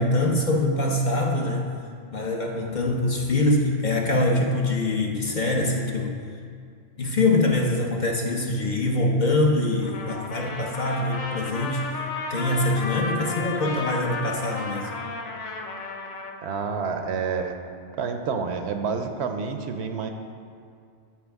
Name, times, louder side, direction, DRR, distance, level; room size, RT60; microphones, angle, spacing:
voice 1, 0.0-1.7 2.1-6.2 7.0-11.8 12.3-14.9, left 2 dB, 45° left, 0 dB, 0.7 m, -24 dB
Trumpet, 9.8-16.4, left 3 dB, 75° left, 1.1 m, -33 dB
voice 2, 16.4-17.6 17.9-20.1, right 5 dB, 70° right, 6 dB, 0.8 m, -28 dB
13.5 x 4.7 x 3.5 m, 2.3 s
omnidirectional pair, 1.2 m